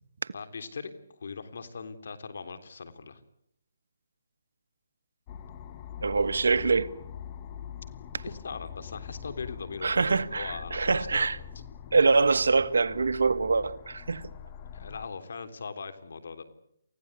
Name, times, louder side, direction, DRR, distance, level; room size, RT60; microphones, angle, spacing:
voice 1, 0.3-3.2 8.2-11.3 14.7-16.4, left 5 dB, 65° left, 3.5 m, -40 dB
sound 1, 5.3-15.1, left 8 dB, 25° left, 1.6 m, -43 dB
voice 2, 6.0-6.9 9.8-11.4 11.9-14.2, right 4 dB, 80° right, 1.5 m, -24 dB
28.5 x 16.5 x 9.8 m
hypercardioid pair, 160°, 0 cm